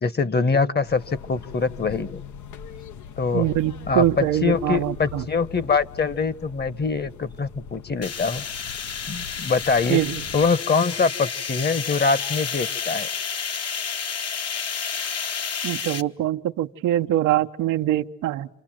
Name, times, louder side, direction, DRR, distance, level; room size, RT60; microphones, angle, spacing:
voice 1, 0.0-2.2 3.2-3.5 3.9-8.4 9.1-10.0 10.3-13.1, left 4 dB, 35° left, 16 dB, 1.3 m, -23 dB
sound 1, 0.9-10.5, left 7 dB, 75° left, 1.2 m, -41 dB
voice 2, 3.3-5.2 9.9-10.2 15.6-18.5, right 13 dB, 90° right, 7 dB, 1.0 m, -23 dB
sound 2, 8.0-16.0, left 6 dB, 55° left, 1.5 m, -30 dB
29.5 x 26.0 x 7.6 m, 0.80 s
cardioid pair, 90°, 30 cm